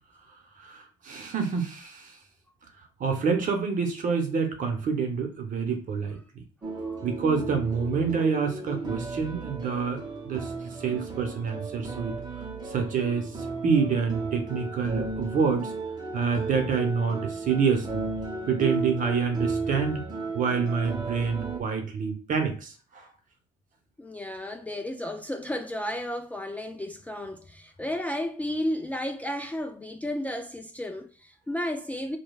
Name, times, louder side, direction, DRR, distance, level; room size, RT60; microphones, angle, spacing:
voice 1, 0.6-2.2 3.0-6.4 7.0-10.5 10.8-12.2 12.6-15.7 16.1-18.0 18.5-20.0 20.3-23.1, right 5 dB, 50° right, 0.9 m, -27 dB
sound 1, 6.6-21.6, right 3 dB, 25° right, 0.9 m, -34 dB
voice 2, 24.0-32.2, left 1 dB, 10° left, 0.3 m, -33 dB
5.0 x 2.2 x 2.3 m
cardioid pair, 110°, 17 cm